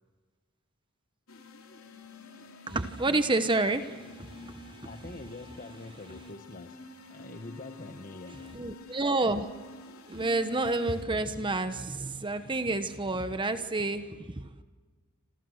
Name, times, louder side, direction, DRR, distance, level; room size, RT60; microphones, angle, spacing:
sound 1, 1.3-11.0, left 2 dB, 70° left, 3.4 m, -49 dB
voice 1, 2.7-4.9 8.5-9.5 10.1-14.5, right 2 dB, 20° right, 10 dB, 1.1 m, -29 dB
voice 2, 4.8-6.8 7.1-8.6, left 2 dB, 40° left, 7 dB, 1.3 m, -45 dB
27.5 x 27.0 x 6.5 m, 1.4 s
head